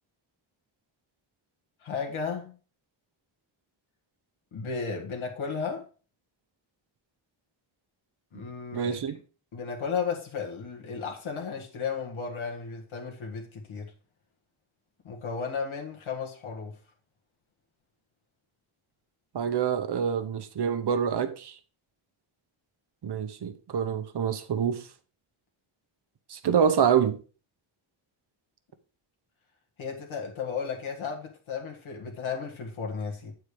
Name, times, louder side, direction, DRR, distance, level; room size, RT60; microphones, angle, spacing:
voice 1, 1.8-2.6 4.5-5.9 8.3-9.0 9.5-13.9 15.0-16.7 29.8-33.3, left 5 dB, 75° left, 1.9 m, -34 dB
voice 2, 8.7-9.1 19.3-21.5 23.0-24.9 26.3-27.2, right 7 dB, 55° right, 0.9 m, -26 dB
8.5 x 4.5 x 4.8 m
wide cardioid pair, 130°, 48 cm